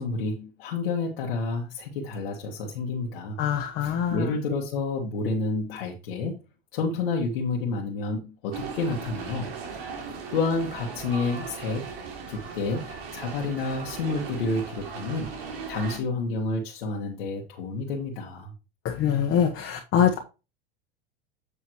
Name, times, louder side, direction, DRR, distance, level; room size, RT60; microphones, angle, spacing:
voice 1, 0.0-3.4 3.8-6.4 6.7-9.5 9.9-11.9 12.3-15.3 15.7-18.5, left 3 dB, 85° left, -2 dB, 1.7 m, -29 dB
voice 2, 3.4-4.3 18.8-20.2, left 8 dB, 45° left, 1 dB, 1.3 m, -24 dB
sound 1, 8.5-16.0, right 5 dB, 85° right, 2.8 m, -38 dB
8.3 x 6.3 x 3.1 m, 0.30 s
supercardioid pair, 115°, 29 cm